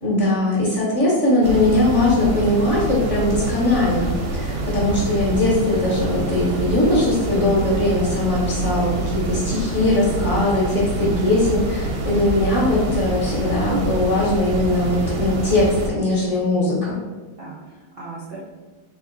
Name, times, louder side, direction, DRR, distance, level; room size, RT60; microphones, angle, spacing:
voice 1, 0.0-17.0, left 2 dB, 45° left, -6 dB, 1.1 m, -20 dB
sound 1, 1.4-15.9, right 2 dB, 90° right, 1.5 m, -26 dB
voice 2, 9.9-10.6 17.4-18.4, right 2 dB, 70° right, -6 dB, 0.5 m, -35 dB
3.5 x 3.2 x 3.8 m, 1.3 s
omnidirectional pair, 2.1 m